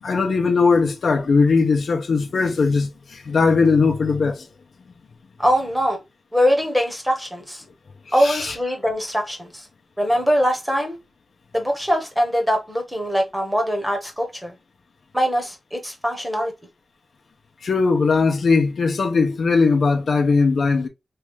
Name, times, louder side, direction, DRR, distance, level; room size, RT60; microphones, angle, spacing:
voice 1, 0.0-4.5 8.2-8.5 17.6-20.9, left 4 dB, 70° left, 0.6 m, -19 dB
voice 2, 5.4-6.0 6.3-7.6 8.1-9.7 10.0-11.0 11.5-14.5 15.1-16.5, equal, 5° right, 0.9 m, -22 dB
3.2 x 2.4 x 3.1 m
wide cardioid pair, 170°, 0 cm